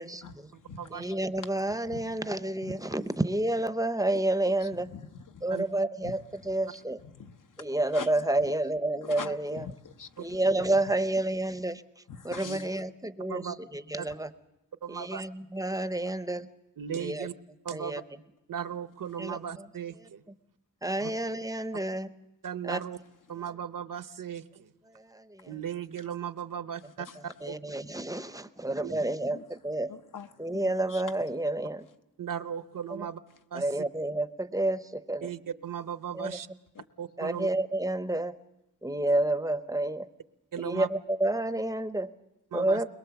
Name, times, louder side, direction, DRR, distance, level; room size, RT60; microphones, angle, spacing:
voice 1, 0.2-1.2 1.4-1.5 1.9-2.1 2.6-2.8 4.4-5.6 6.0-6.2 7.0-8.2 9.0-10.4 12.1-12.7 25.4-25.5 27.0-27.2 29.3-29.4 29.9-31.0 36.7-36.8, left 5 dB, 60° left, 0.9 m, -44 dB
voice 2, 0.9-4.9 5.4-7.0 7.6-9.7 10.2-14.3 14.9-16.5 16.9-17.3 17.7-18.0 19.2-19.7 20.0-20.4 20.8-22.1 22.6-22.8 24.9-25.5 27.4-29.9 30.4-31.9 32.9-33.1 33.5-35.3 36.1-36.4 37.2-38.4 38.8-40.1 40.6-42.1 42.5-42.9, right 1 dB, 10° right, 0.7 m, -30 dB
voice 3, 14.8-15.2 16.8-17.3 17.6-18.0 18.5-20.2 21.0-21.1 22.4-23.0 23.3-24.7 25.5-27.1 27.5-27.6 28.8-28.9 32.2-33.2 33.5-33.6 35.2-36.5 37.0-37.5 40.5-40.9 42.5-42.8, right 8 dB, 65° right, 0.8 m, -36 dB
22.0 x 21.5 x 7.0 m
wide cardioid pair, 130°, 35 cm